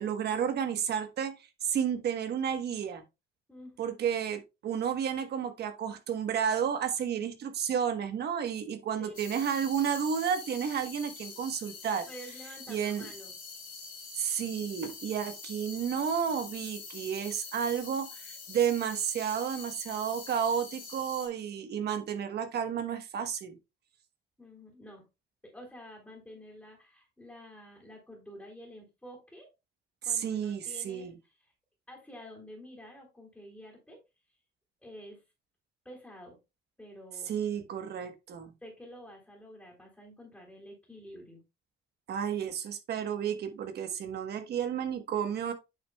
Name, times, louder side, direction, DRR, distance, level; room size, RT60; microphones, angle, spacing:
voice 1, 0.0-1.3 1.6-3.0 3.8-12.0 12.7-13.1 14.2-23.6 30.0-31.1 37.3-38.5 42.1-45.5, right 8 dB, 60° right, 8 dB, 1.2 m, -31 dB
voice 2, 3.5-3.8 9.0-9.2 12.0-13.3 24.4-25.1 25.4-29.5 30.0-31.1 31.9-34.0 34.8-35.2 35.8-36.4 36.8-37.3 38.6-41.4, equal, 5° left, -4 dB, 2.7 m, -49 dB
sound 1, 9.1-21.3, left 5 dB, 50° left, 3.5 m, -45 dB
9.0 x 6.1 x 2.3 m, 0.25 s
cardioid pair, 150°, 18 cm